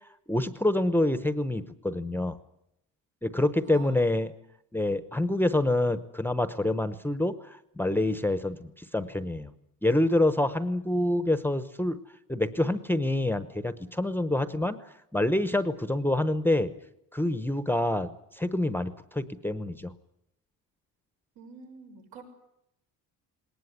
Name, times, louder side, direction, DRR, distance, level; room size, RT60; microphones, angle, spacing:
voice 1, 0.3-2.4 3.2-4.3 4.7-9.5 9.8-12.0 12.3-14.8 15.1-16.7 17.1-19.9, left 1 dB, 5° left, 12 dB, 0.8 m, -27 dB
voice 2, 3.7-4.0 21.3-22.2, right 5 dB, 80° right, 3 dB, 6.4 m, -47 dB
20.5 x 19.0 x 9.8 m, 0.81 s
cardioid pair, 150°, 37 cm